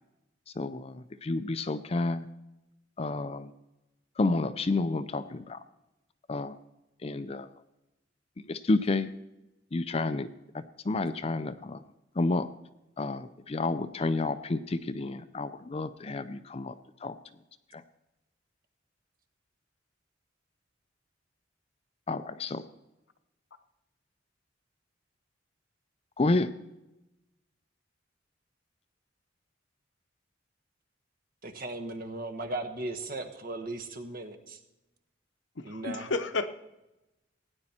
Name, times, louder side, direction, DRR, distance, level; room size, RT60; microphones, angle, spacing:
voice 1, 0.6-2.3 3.0-3.5 4.2-5.6 6.3-6.5 7.0-7.5 8.5-9.1 9.7-10.3 10.9-11.8 12.2-12.5 13.0-16.7 17.0-17.2 22.1-22.6 26.2-26.5, left 2 dB, 30° left, 12 dB, 0.5 m, -30 dB
voice 2, 31.4-34.6 35.6-36.1, right 2 dB, 50° right, 8 dB, 1.3 m, -37 dB
voice 3, 35.6-36.5, left 3 dB, 70° left, 10 dB, 0.9 m, -31 dB
17.0 x 9.9 x 4.4 m, 0.95 s
head